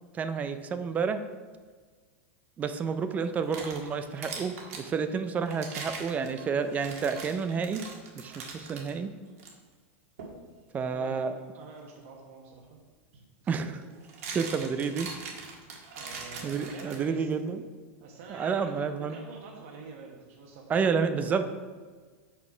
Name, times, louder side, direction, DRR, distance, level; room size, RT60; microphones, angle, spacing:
voice 1, 0.1-1.2 2.6-7.8 8.2-9.1 10.7-11.4 13.5-13.7 14.3-15.1 16.4-17.6 18.3-19.2 20.7-21.5, right 5 dB, 20° right, 9 dB, 0.4 m, -30 dB
sound 1, 3.2-4.9 5.5-8.9 9.4-9.5 10.2-10.4 12.5-12.6 13.8-17.3, right 4 dB, 85° right, 1.7 m, -41 dB
voice 2, 10.9-12.8 13.1-14.0 16.0-17.7 18.0-21.5, right 4 dB, 60° right, 0 dB, 1.2 m, -47 dB
6.0 x 5.7 x 4.9 m, 1.5 s
supercardioid pair, 150°, 8 cm